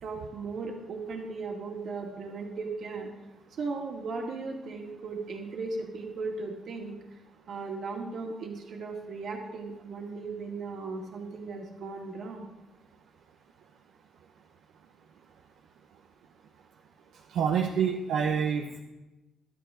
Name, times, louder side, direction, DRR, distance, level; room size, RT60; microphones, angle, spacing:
voice 1, 0.0-3.1 3.6-6.9 7.5-12.4, right 4 dB, 65° right, 1 dB, 2.1 m, -37 dB
voice 2, 17.3-18.8, right 7 dB, 80° right, 2 dB, 0.8 m, -27 dB
12.0 x 9.3 x 5.0 m, 1.1 s
cardioid pair, 90°, 0 cm